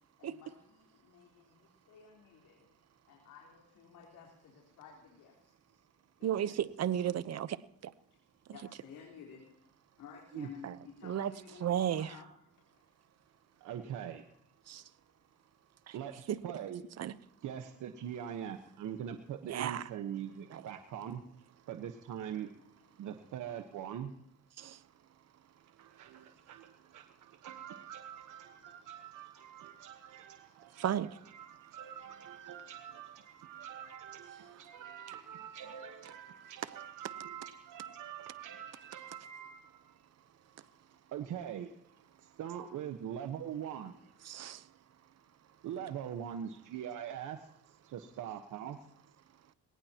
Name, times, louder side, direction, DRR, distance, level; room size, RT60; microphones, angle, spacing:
voice 1, 0.2-2.7 3.1-5.6 6.2-6.5 8.5-9.4 10.0-12.3 12.7-12.8 29.7-29.8 44.5-44.6, left 7 dB, 85° left, -1 dB, 3.9 m, -54 dB
voice 2, 6.2-7.9 10.6-10.8 11.0-11.3 11.6-12.1 14.7-14.8 15.9-16.0 16.3-16.4 17.0-17.1 19.5-19.9 20.5-20.6 24.6-24.8 30.7-31.1 44.2-44.7, right 10 dB, 55° right, 16 dB, 0.9 m, -34 dB
voice 3, 13.6-14.2 15.9-16.8 17.4-21.2 21.7-22.5 23.0-24.1 25.8-40.0 41.1-41.7 42.2-44.0 45.6-47.5 47.8-48.8, right 9 dB, 80° right, 7 dB, 1.3 m, -43 dB
21.0 x 18.5 x 3.0 m, 0.77 s
cardioid pair, 90°, 30 cm